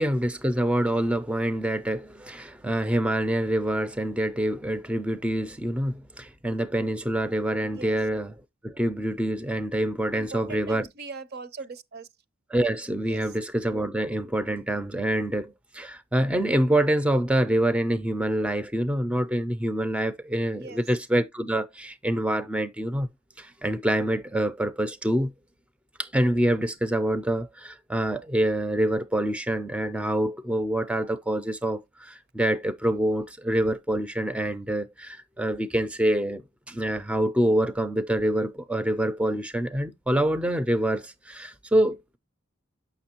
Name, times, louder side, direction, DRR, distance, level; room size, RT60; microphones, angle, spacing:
voice 1, 0.0-8.3 8.6-10.9 12.5-23.1 23.4-25.3 26.0-42.0, right 1 dB, 5° right, 0.4 m, -26 dB
voice 2, 10.1-12.1 13.0-13.2 20.6-20.8, right 4 dB, 50° right, 0.6 m, -40 dB
7.0 x 6.0 x 2.8 m
head